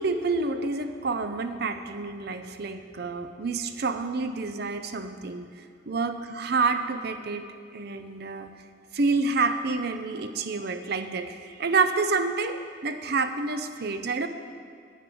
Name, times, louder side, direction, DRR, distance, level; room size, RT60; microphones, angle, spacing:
voice 1, 0.0-5.5 5.9-7.5 7.7-8.5 8.9-14.3, right 4 dB, 55° right, 9 dB, 0.6 m, -28 dB
9.2 x 8.1 x 6.1 m, 2.2 s
head